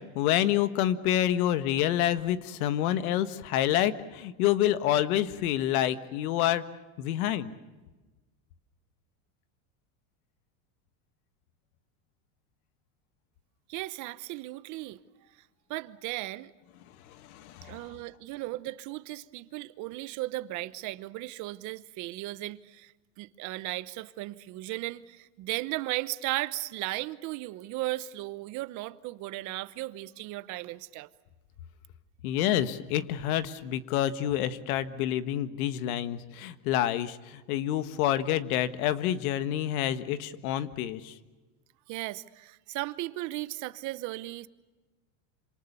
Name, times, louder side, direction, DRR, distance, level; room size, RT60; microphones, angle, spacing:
voice 1, 0.2-6.6 7.0-7.5 17.1-17.8 32.2-41.1, left 12 dB, 75° left, 1.7 m, -28 dB
voice 2, 13.7-15.3 15.7-16.5 17.6-22.9 23.2-31.1 41.9-44.5, right 18 dB, 40° right, 1.0 m, -36 dB
27.5 x 27.0 x 6.9 m
supercardioid pair, 160°, 43 cm